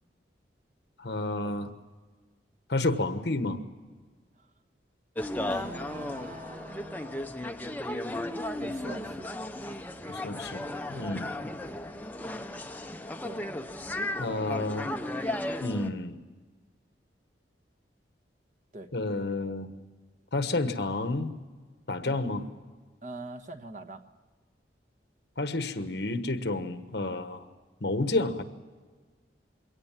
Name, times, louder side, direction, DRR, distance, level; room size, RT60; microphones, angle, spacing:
voice 1, 1.0-1.7 2.7-3.6 10.1-10.6 10.9-11.3 14.2-14.9 15.6-16.2 18.9-19.7 20.3-21.3 21.9-22.4 25.4-27.4 27.8-28.4, left 2 dB, 65° left, 9 dB, 1.3 m, -30 dB
sound 1, 5.1-15.9, left 1 dB, 10° left, 0.8 m, -35 dB
voice 2, 5.5-7.2 8.6-9.3 10.9-11.1 13.2-13.4 14.3-14.8 15.0-15.1 18.7-18.9 22.0-22.2 23.0-24.0, right 2 dB, 45° right, 6 dB, 1.3 m, -43 dB
23.0 x 17.5 x 7.4 m, 1.4 s
head